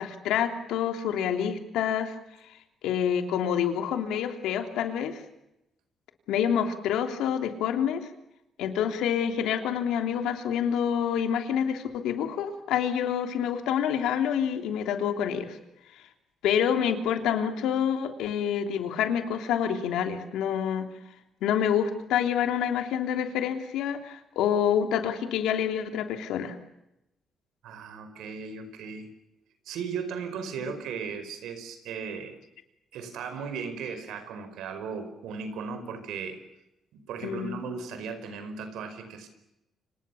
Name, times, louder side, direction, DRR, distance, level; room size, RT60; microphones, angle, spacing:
voice 1, 0.0-2.1 2.8-5.2 6.3-8.0 8.6-15.6 16.4-20.9 21.4-26.5 37.2-37.5, left 8 dB, 90° left, 6 dB, 3.2 m, -27 dB
voice 2, 27.6-29.1 29.6-32.4 32.9-36.4 36.9-39.3, right 5 dB, 85° right, 9 dB, 5.0 m, -36 dB
29.0 x 26.5 x 7.2 m, 0.89 s
cardioid pair, 90°, 0 cm